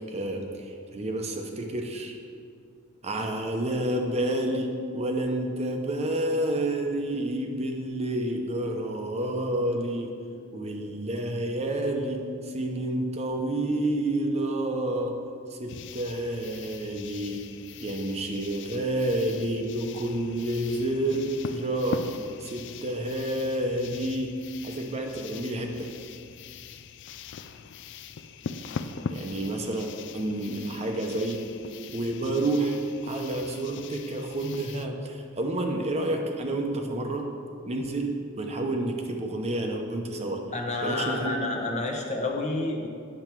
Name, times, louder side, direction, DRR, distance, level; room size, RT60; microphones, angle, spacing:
voice 1, 0.1-2.2 3.0-10.2 10.5-17.5 17.8-22.1 22.4-24.4 24.6-25.9 29.1-31.6 31.9-37.3 37.7-40.5 40.8-41.5, right 1 dB, 30° right, 3 dB, 0.7 m, -29 dB
sound 1, 15.7-34.9, left 5 dB, 60° left, 0.4 m, -41 dB
voice 2, 40.5-42.9, left 2 dB, 35° left, 1 dB, 1.0 m, -29 dB
8.8 x 7.0 x 4.5 m, 2.3 s
head